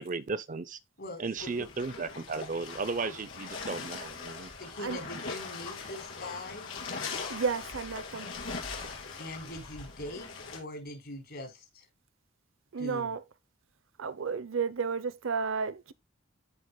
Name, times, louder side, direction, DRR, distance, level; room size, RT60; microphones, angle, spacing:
voice 1, 0.0-0.8 1.2-4.5, right 4 dB, 40° right, 0.6 m, -35 dB
voice 2, 1.0-1.5 3.1-3.2 4.6-6.7 9.2-11.8 12.8-13.1, left 1 dB, 60° left, 4.1 m, -42 dB
sound 1, 1.4-10.6, left 4 dB, 80° left, 3.1 m, -41 dB
voice 3, 7.3-8.3 12.7-13.2 14.0-15.9, right 5 dB, 85° right, 0.7 m, -32 dB
14.0 x 5.1 x 2.3 m
head